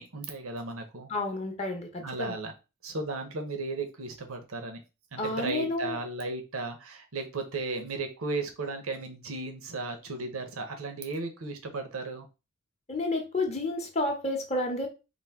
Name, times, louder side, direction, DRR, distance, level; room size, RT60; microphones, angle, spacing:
voice 1, 0.0-1.1 2.0-2.5 2.8-4.8 5.1-12.3, right 3 dB, 70° right, 0.8 m, -35 dB
voice 2, 1.1-2.4 5.2-6.0 12.9-14.9, left 2 dB, 30° left, 0.7 m, -30 dB
4.1 x 2.6 x 3.5 m
head